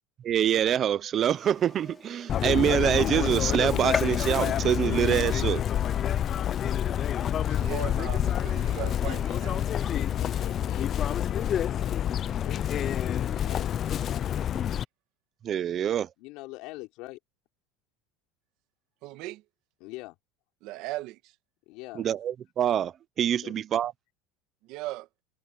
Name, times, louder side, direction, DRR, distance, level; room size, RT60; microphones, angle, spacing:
voice 1, 0.2-5.6 15.4-16.1 22.0-23.9, right 9 dB, 30° right, 0.7 m, -25 dB
Gunshot gunfire, 1.2-11.2, left 3 dB, 10° left, 4.5 m, -43 dB
Chirp tweet, 2.3-14.8, left 10 dB, 30° left, 0.4 m, -28 dB
voice 2, 7.5-9.6 19.0-19.4 20.6-21.3 24.6-25.1, right 18 dB, 55° right, 1.6 m, -37 dB
voice 3, 9.8-13.7 16.2-17.2 19.8-20.2 21.7-22.1 23.3-23.5, left 22 dB, 60° left, 4.1 m, -44 dB
cardioid pair, 160°, 0 cm